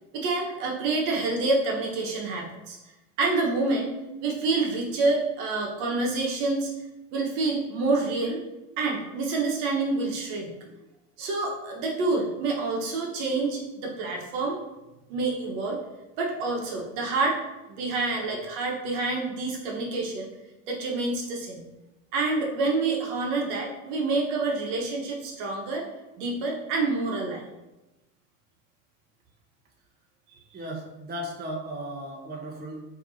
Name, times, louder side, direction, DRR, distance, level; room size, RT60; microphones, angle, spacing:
voice 1, 0.1-2.8 3.2-3.9 4.2-6.7 7.1-8.4 8.8-10.5 11.2-14.6 15.1-15.8 16.2-17.4 17.7-20.3 20.7-21.6 22.1-25.8 26.2-27.5, right 3 dB, 60° right, -1 dB, 1.3 m, -27 dB
voice 2, 30.5-32.8, right 1 dB, 25° right, -1 dB, 1.1 m, -36 dB
6.4 x 3.0 x 2.7 m, 1.0 s
hypercardioid pair, 95°, 40 cm